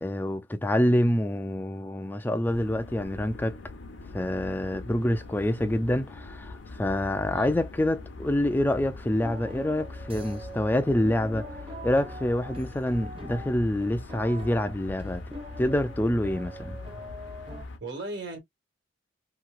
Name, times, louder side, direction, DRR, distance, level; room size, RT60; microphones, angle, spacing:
voice 1, 0.0-3.6 4.1-11.5 11.8-15.2 15.6-16.8, left 1 dB, 10° left, 0.3 m, -26 dB
sound 1, 2.4-17.8, left 3 dB, 70° left, 0.7 m, -42 dB
sound 2, 9.2-17.7, right 1 dB, 30° right, 0.8 m, -43 dB
voice 2, 17.5-18.4, right 2 dB, 60° right, 1.3 m, -37 dB
3.0 x 2.8 x 2.3 m
head